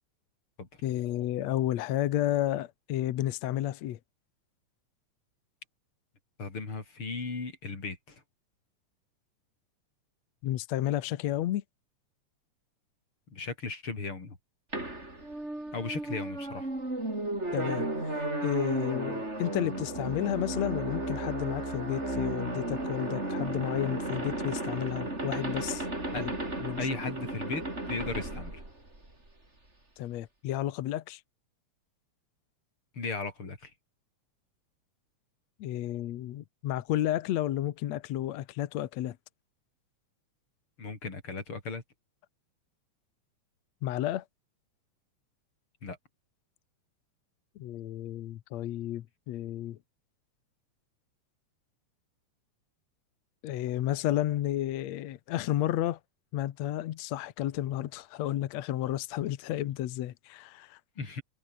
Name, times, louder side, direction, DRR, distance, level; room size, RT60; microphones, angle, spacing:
voice 1, 0.8-4.0 10.4-11.6 17.5-25.9 26.2-26.3 26.6-26.9 30.0-31.2 35.6-39.2 43.8-44.2 47.6-49.8 53.4-56.0 56.3-60.8, left 13 dB, 70° left, 2.1 m, -32 dB
voice 2, 6.4-8.2 13.3-14.4 15.7-16.7 26.1-26.2 26.8-28.6 32.9-33.7 40.8-41.8 45.8-46.0 61.0-61.2, left 4 dB, 45° left, 5.1 m, -36 dB
sound 1, 14.7-29.3, right 2 dB, 20° right, 6.3 m, -34 dB
omnidirectional pair, 3.4 m